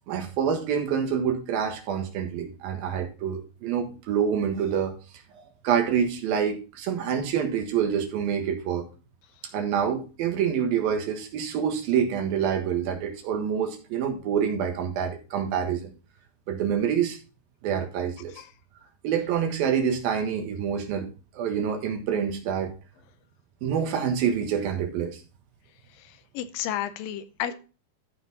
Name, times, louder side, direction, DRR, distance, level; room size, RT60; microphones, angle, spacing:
voice 1, 0.1-4.9 5.6-8.8 9.5-15.9 16.5-17.2 17.6-18.3 19.0-21.1 21.3-22.7 23.6-25.2, right 8 dB, 80° right, 4 dB, 3.3 m, -26 dB
voice 2, 26.0-27.5, left 11 dB, 80° left, 11 dB, 2.3 m, -32 dB
14.0 x 4.7 x 4.0 m, 0.34 s
omnidirectional pair, 4.1 m